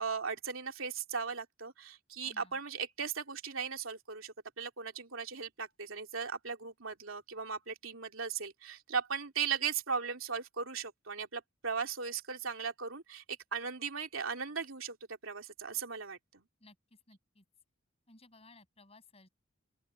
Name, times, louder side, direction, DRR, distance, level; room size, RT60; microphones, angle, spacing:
voice 1, 0.0-16.4, right 6 dB, 80° right, 3.0 m, -38 dB
voice 2, 2.2-2.6 16.6-16.8 17.1-17.4 18.1-19.3, left 2 dB, 30° left, 7.3 m, -59 dB
open air
head